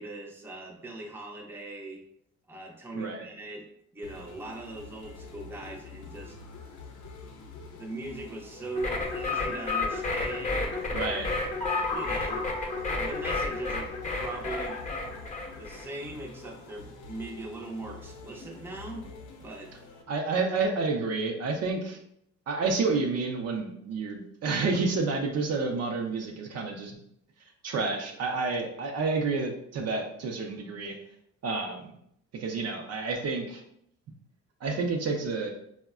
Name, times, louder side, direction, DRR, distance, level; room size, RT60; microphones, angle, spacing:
voice 1, 0.0-2.0 2.5-3.7 3.9-6.4 7.7-10.9 11.9-12.4 12.9-14.9 15.6-19.1 19.4-19.7, right 2 dB, 5° right, -1 dB, 0.5 m, -40 dB
voice 2, 2.9-3.3 10.9-11.3 20.1-22.0 22.5-27.0 27.6-31.0 31.4-31.9 32.3-33.6 34.6-35.5, right 4 dB, 55° right, 3 dB, 0.5 m, -29 dB
sound 1, 4.0-20.0, left 4 dB, 70° left, 0.6 m, -47 dB
sound 2, 8.7-15.9, left 3 dB, 25° left, 0.7 m, -31 dB
3.4 x 2.1 x 2.3 m, 0.71 s
cardioid pair, 90°, 30 cm